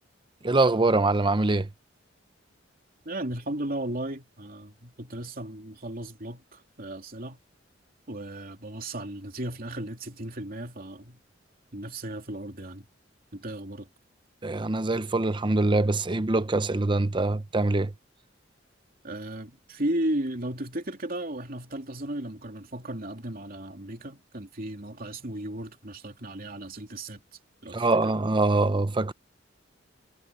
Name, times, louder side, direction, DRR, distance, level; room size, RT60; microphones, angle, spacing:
voice 1, 0.4-1.7 14.4-17.9 27.7-29.1, right 2 dB, 25° right, 0.8 m, -24 dB
voice 2, 3.0-7.4 8.1-11.2 11.7-12.9 13.3-13.9 19.0-27.2 27.6-28.0, right 1 dB, 50° right, 3.0 m, -35 dB
head